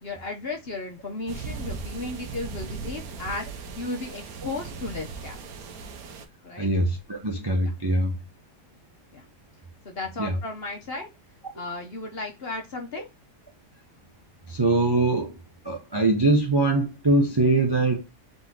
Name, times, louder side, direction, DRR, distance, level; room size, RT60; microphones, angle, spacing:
voice 1, 0.0-3.5 3.8-5.5 6.4-6.7 7.6-7.7 9.1-9.2 9.8-11.1 11.5-13.1, left 2 dB, 45° left, 0.9 m, -35 dB
sound 1, 1.3-6.2, right 4 dB, 70° right, 1.2 m, -38 dB
voice 2, 6.6-8.1 10.2-10.3 14.5-15.4 15.6-18.0, right 2 dB, 30° right, 0.4 m, -22 dB
3.9 x 3.0 x 3.8 m
omnidirectional pair, 1.7 m